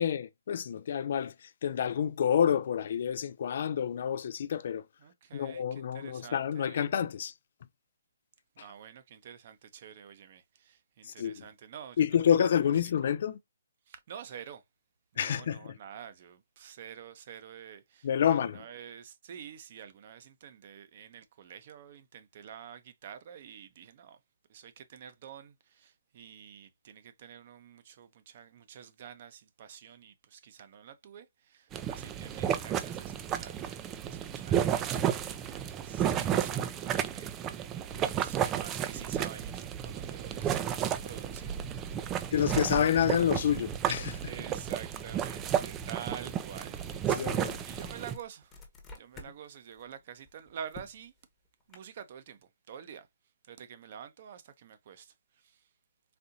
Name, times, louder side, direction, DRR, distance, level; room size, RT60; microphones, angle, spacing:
voice 1, 0.0-4.9 5.3-7.3 11.0-11.5 12.0-13.4 15.2-15.7 18.0-18.6 42.3-44.2 47.1-47.6, left 8 dB, 50° left, 0.3 m, -28 dB
voice 2, 5.0-6.9 8.6-12.1 12.3-12.5 13.9-14.6 15.1-24.2 24.5-33.8 34.0-35.5 35.7-40.6 41.0-42.2 44.3-46.8 47.6-48.6 48.9-51.1 51.7-52.4 52.7-53.1 53.5-55.7, right 8 dB, 45° right, 0.8 m, -48 dB
sound 1, 31.7-48.1, right 9 dB, 15° right, 0.4 m, -32 dB
sound 2, 45.1-45.2 45.6-49.4 49.7-51.8, left 3 dB, 10° left, 1.0 m, -51 dB
4.2 x 2.6 x 2.6 m
hypercardioid pair, 155°, 0 cm